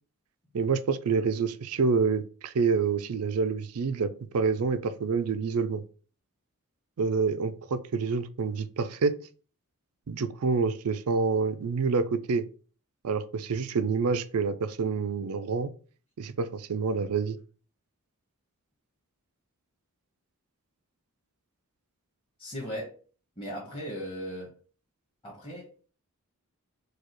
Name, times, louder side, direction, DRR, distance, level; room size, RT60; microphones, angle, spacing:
voice 1, 0.5-5.8 7.0-9.1 10.1-12.4 13.0-15.7 16.2-17.4, right 5 dB, 80° right, 0.4 m, -27 dB
voice 2, 22.4-22.9 23.4-24.5 25.2-25.7, equal, 25° left, 1.4 m, -37 dB
4.7 x 2.4 x 4.5 m
head